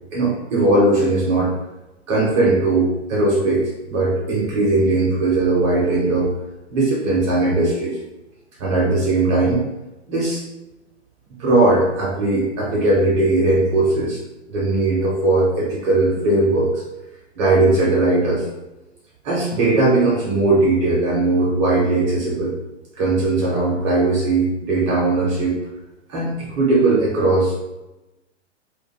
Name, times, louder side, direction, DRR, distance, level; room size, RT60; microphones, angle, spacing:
voice 1, 0.1-1.5 2.1-6.3 6.7-8.0 8.6-9.6 10.1-10.4 11.4-14.2 14.5-16.8 17.4-18.4 19.2-22.5 23.0-25.6 26.1-27.5, right 2 dB, 25° right, -4 dB, 0.4 m, -19 dB
2.3 x 2.1 x 2.8 m, 1.0 s
hypercardioid pair, 115°, 37 cm